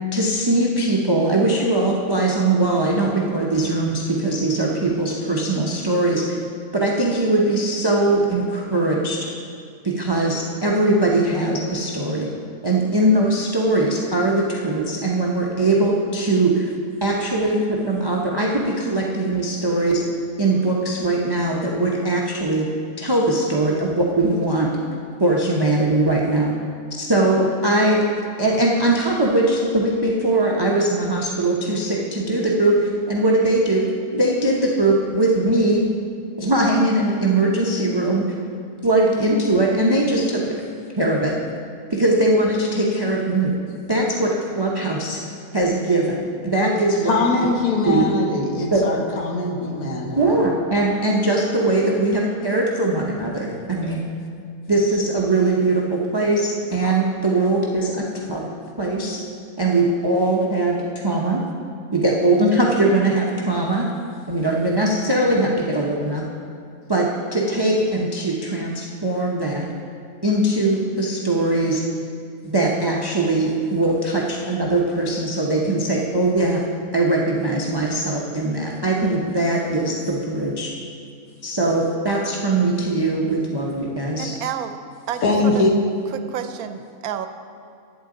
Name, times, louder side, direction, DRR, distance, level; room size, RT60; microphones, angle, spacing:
voice 1, 0.1-6.4 6.7-9.2 9.8-12.3 12.6-16.7 17.0-20.0 20.4-22.7 23.0-24.7 25.2-26.6 27.0-28.0 28.4-33.9 34.1-35.8 36.4-38.3 38.8-40.6 41.0-41.3 41.9-43.5 43.9-45.2 45.5-46.2 46.4-47.2 47.9-48.0 48.7-48.8 50.1-54.0 54.7-58.4 58.8-59.2 59.6-60.8 61.0-61.4 61.9-63.9 64.3-66.2 66.9-69.6 70.2-71.8 72.4-76.6 76.9-80.7 81.4-84.3, right 2 dB, 25° right, -2 dB, 0.6 m, -20 dB
voice 2, 47.1-50.4 85.2-85.7, left 3 dB, 90° left, 1 dB, 1.6 m, -22 dB
voice 3, 84.2-84.8 85.1-85.7 86.1-87.3, right 9 dB, 85° right, 9 dB, 1.1 m, -30 dB
11.0 x 8.8 x 3.8 m, 2.3 s
omnidirectional pair, 1.5 m